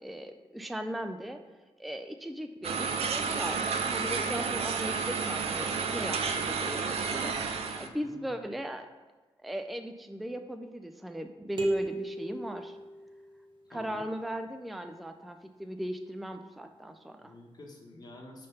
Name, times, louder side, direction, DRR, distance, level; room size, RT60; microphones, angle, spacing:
voice 1, 0.0-1.4 1.8-8.9 9.4-12.8 13.7-17.3, equal, ahead, 6 dB, 0.3 m, -38 dB
sound 1, 2.6-7.9, right 5 dB, 75° right, 0.5 m, -31 dB
voice 2, 7.7-8.4 13.7-14.0 17.2-18.5, left 2 dB, 40° left, 0 dB, 1.2 m, -49 dB
sound 2, 11.6-13.5, right 2 dB, 50° right, 1.1 m, -34 dB
5.5 x 3.3 x 5.6 m, 1.2 s
cardioid pair, 100°, 10 cm